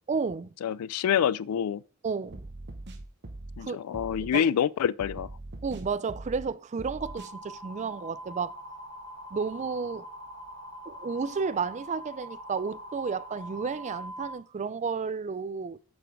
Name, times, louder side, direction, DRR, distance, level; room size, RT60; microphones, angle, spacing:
voice 1, 0.1-0.5 2.0-2.4 3.6-3.8 4.3-4.5 5.6-8.6 9.3-10.1 10.9-15.8, right 5 dB, 35° right, 0.4 m, -32 dB
voice 2, 0.6-1.8 3.6-5.3, left 9 dB, 90° left, 0.3 m, -27 dB
sound 1, 2.3-3.6 3.9-4.4 5.0-6.5 6.8-7.3, right 2 dB, 55° right, 1.1 m, -41 dB
sound 2, 7.0-14.3, right 1 dB, 20° left, 2.9 m, -43 dB
7.8 x 5.1 x 4.8 m
head